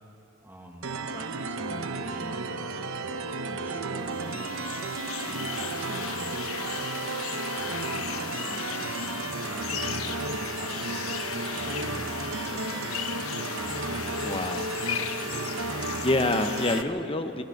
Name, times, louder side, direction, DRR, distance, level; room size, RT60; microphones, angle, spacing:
voice 1, 0.4-4.7 5.3-6.6 7.5-11.2 11.5-13.9 14.4-14.6 15.0-15.7, equal, 10° right, 2 dB, 1.4 m, -46 dB
sound 1, 0.8-16.8, right 3 dB, 70° right, 0.9 m, -33 dB
sound 2, 4.0-16.8, left 8 dB, 85° left, 1.0 m, -36 dB
voice 2, 14.2-14.7 15.7-17.4, left 2 dB, 25° left, 7 dB, 0.9 m, -27 dB
29.5 x 16.0 x 5.9 m, 2.8 s
head